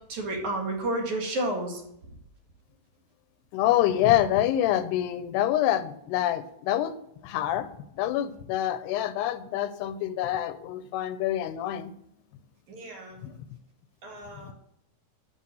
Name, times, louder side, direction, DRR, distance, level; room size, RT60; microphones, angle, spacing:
voice 1, 0.1-1.8 12.7-13.2 14.0-14.5, right 1 dB, 55° right, 1 dB, 3.0 m, -31 dB
voice 2, 3.5-7.0 7.2-7.7 8.0-11.9 13.2-13.3 14.3-14.5, left 12 dB, 85° left, 12 dB, 2.8 m, -26 dB
11.5 x 6.1 x 7.7 m, 0.75 s
omnidirectional pair, 4.6 m